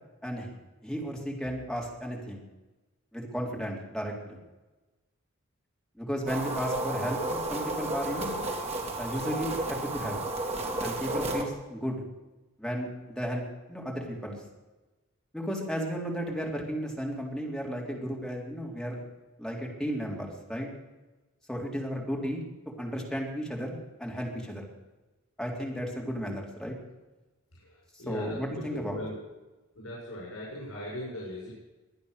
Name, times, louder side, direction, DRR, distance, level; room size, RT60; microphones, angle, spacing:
voice 1, 0.2-0.6 0.8-2.4 3.1-4.4 6.0-8.4 9.0-10.2 10.8-12.0 12.6-13.4 13.7-14.4 15.3-19.0 19.4-20.7 21.5-22.4 22.8-24.6 25.4-26.8 28.1-29.0, equal, ahead, -2 dB, 3.6 m, -34 dB
sound 1, 6.3-11.4, right 2 dB, 30° right, 2.3 m, -32 dB
voice 2, 27.5-28.4 28.7-29.2 29.8-31.6, left 1 dB, 85° left, -6 dB, 6.9 m, -39 dB
23.0 x 9.5 x 6.7 m, 1.1 s
head